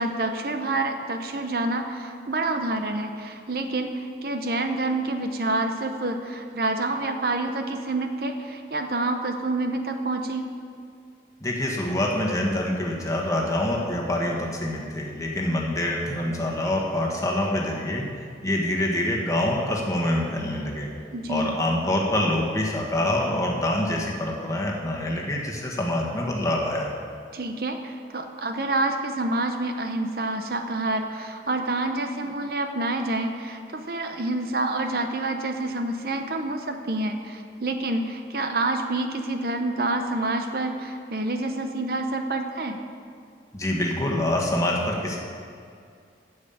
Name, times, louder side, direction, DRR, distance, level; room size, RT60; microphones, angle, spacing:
voice 1, 0.0-10.5 21.1-21.6 27.3-42.8, right 2 dB, 55° right, 6 dB, 0.7 m, -28 dB
voice 2, 11.4-18.1 18.4-20.9 21.3-26.9 43.5-45.2, left 1 dB, 20° left, -2 dB, 1.5 m, -26 dB
9.4 x 7.3 x 8.5 m, 2.3 s
head